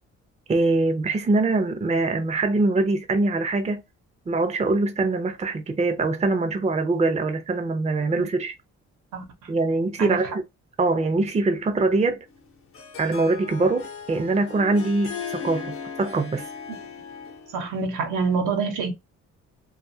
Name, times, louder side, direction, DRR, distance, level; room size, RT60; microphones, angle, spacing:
voice 1, 0.5-3.8 4.3-8.5 9.5-10.4 10.8-12.2 13.0-16.5, right 3 dB, 20° right, 0.6 m, -23 dB
voice 2, 9.1-9.5 10.0-10.2 17.5-18.9, right 4 dB, 80° right, 0.9 m, -27 dB
Harp, 12.3-17.7, left 6 dB, 45° left, 0.8 m, -37 dB
2.5 x 2.4 x 2.6 m
cardioid pair, 90°, 30 cm